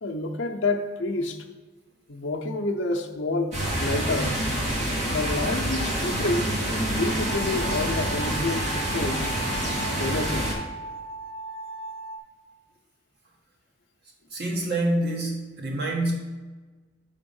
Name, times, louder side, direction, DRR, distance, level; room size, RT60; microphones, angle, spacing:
voice 1, 0.0-1.4 2.1-4.4 5.0-6.5 6.9-9.3 9.9-10.5, left 2 dB, 65° left, 3 dB, 0.7 m, -28 dB
sound 1, 3.5-10.5, right 1 dB, 35° right, 1.8 m, -27 dB
sound 2, 7.2-12.2, right 2 dB, 30° left, 0.8 m, -37 dB
voice 2, 14.3-16.1, right 1 dB, 50° right, -2 dB, 1.5 m, -26 dB
6.9 x 3.6 x 5.4 m, 1.3 s
head